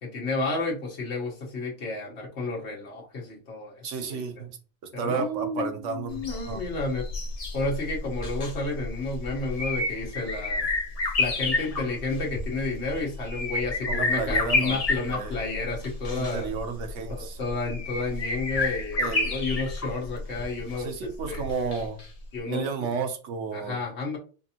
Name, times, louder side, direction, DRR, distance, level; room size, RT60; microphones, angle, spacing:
voice 1, 0.0-4.2 4.9-7.1 7.5-10.7 11.2-16.5 17.1-21.5 22.3-22.6 23.5-24.2, left 3 dB, 65° left, 1.4 m, -31 dB
voice 2, 3.8-4.6 5.0-6.6 13.9-15.4 16.1-17.4 19.0-19.2 20.7-22.0 22.5-23.8, right 5 dB, 90° right, 1.1 m, -32 dB
sound 1, 6.1-22.0 22.3-22.4, left 3 dB, 35° left, 0.7 m, -30 dB
5.1 x 2.6 x 2.8 m
omnidirectional pair, 1.2 m